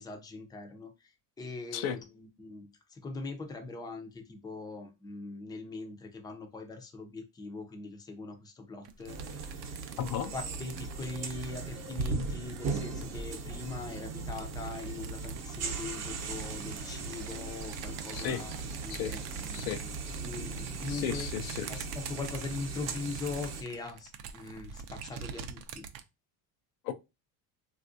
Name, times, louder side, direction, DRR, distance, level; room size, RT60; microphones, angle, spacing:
voice 1, 0.0-10.0 10.3-19.9 20.2-21.3 21.7-25.8, left 3 dB, 10° left, 0.5 m, -41 dB
sound 1, 8.8-13.6 14.2-26.0, right 7 dB, 60° right, 0.6 m, -46 dB
sound 2, 9.1-23.6, right 4 dB, 35° right, 0.8 m, -38 dB
voice 2, 10.0-10.3 18.1-18.4 18.9-19.1 19.5-19.8 20.9-21.7 26.8-26.9, left 9 dB, 85° left, 0.6 m, -34 dB
3.4 x 2.5 x 2.6 m
cardioid pair, 120°, 42 cm